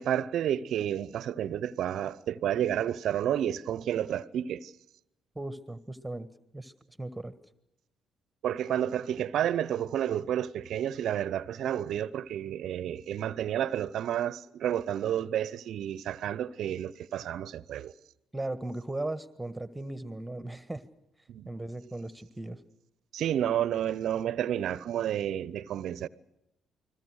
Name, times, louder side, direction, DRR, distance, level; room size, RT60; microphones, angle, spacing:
voice 1, 0.0-4.7 8.4-17.9 21.3-21.5 23.1-26.1, right 10 dB, 65° right, 0.8 m, -30 dB
voice 2, 5.3-6.3 6.5-6.7 7.0-7.3 18.3-20.8 21.4-22.6, right 2 dB, 10° right, 1.5 m, -37 dB
29.5 x 21.0 x 6.4 m
hypercardioid pair, 45°, 0 cm